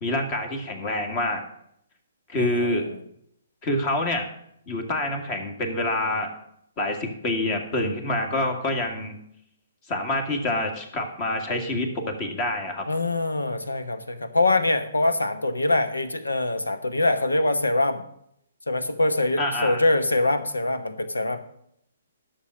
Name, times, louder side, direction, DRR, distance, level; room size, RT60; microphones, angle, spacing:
voice 1, 0.0-1.4 2.3-2.8 3.6-4.3 4.7-6.3 6.8-9.2 9.9-12.9 19.4-19.8, left 1 dB, 35° left, 5 dB, 1.9 m, -27 dB
voice 2, 2.4-3.0 12.9-18.0 18.7-21.4, left 2 dB, 85° left, 10 dB, 1.1 m, -24 dB
11.5 x 6.5 x 6.3 m, 0.72 s
figure-of-eight pair, 130°, 0 cm